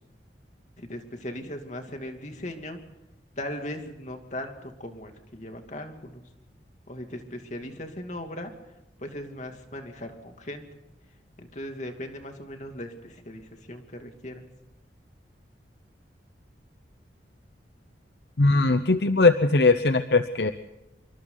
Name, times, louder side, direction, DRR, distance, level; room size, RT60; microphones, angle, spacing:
voice 1, 0.8-2.8 3.4-6.2 6.9-8.5 9.0-10.7 11.4-14.4, left 1 dB, 40° left, 4 dB, 2.7 m, -38 dB
voice 2, 18.4-20.5, left 3 dB, 70° left, 10 dB, 0.8 m, -20 dB
27.0 x 24.5 x 4.0 m, 0.95 s
head